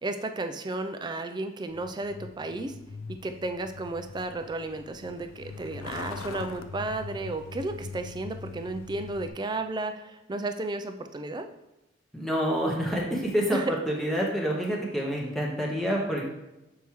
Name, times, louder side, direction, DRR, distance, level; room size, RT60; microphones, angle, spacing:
voice 1, 0.0-2.8 3.1-11.5 13.5-13.8, right 2 dB, 20° right, 8 dB, 0.3 m, -33 dB
Truck, 1.7-9.3, left 4 dB, 80° left, 0.4 m, -42 dB
voice 2, 12.1-16.2, equal, ahead, -3 dB, 0.7 m, -28 dB
6.9 x 4.6 x 3.0 m, 0.97 s
head